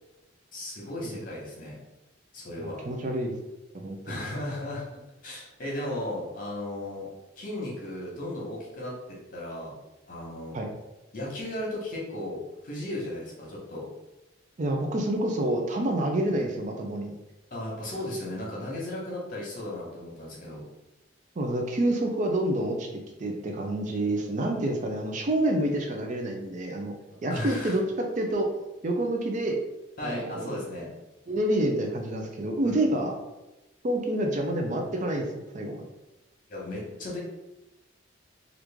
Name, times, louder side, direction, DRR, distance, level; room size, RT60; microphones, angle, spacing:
voice 1, 0.5-1.8 2.3-2.8 4.0-5.0 5.2-7.1 7.4-9.7 10.1-10.5 11.1-12.4 12.6-13.8 17.5-20.6 27.3-27.8 30.0-30.9 32.6-32.7 36.5-37.2, left 1 dB, 45° left, -4 dB, 1.1 m, -35 dB
voice 2, 2.6-3.3 3.7-4.3 10.5-10.7 14.6-17.1 21.4-26.9 27.2-28.5 28.8-29.6 30.0-30.5 31.3-33.1 33.8-35.3 35.5-35.7, right 1 dB, 40° right, 2 dB, 0.4 m, -28 dB
3.0 x 2.5 x 3.4 m, 0.98 s
head